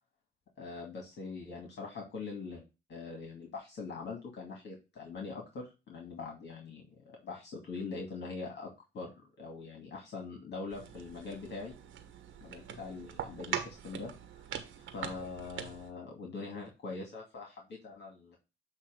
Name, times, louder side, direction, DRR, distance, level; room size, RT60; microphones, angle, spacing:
voice 1, 0.6-2.6 2.9-6.9 7.2-9.1 9.4-11.7 12.4-14.5 14.8-18.4, left 4 dB, 60° left, 1 dB, 2.3 m, -43 dB
sound 1, 10.7-15.9, right 9 dB, 80° right, 1.2 m, -42 dB
8.1 x 3.0 x 5.5 m, 0.27 s
cardioid pair, 90°, 20 cm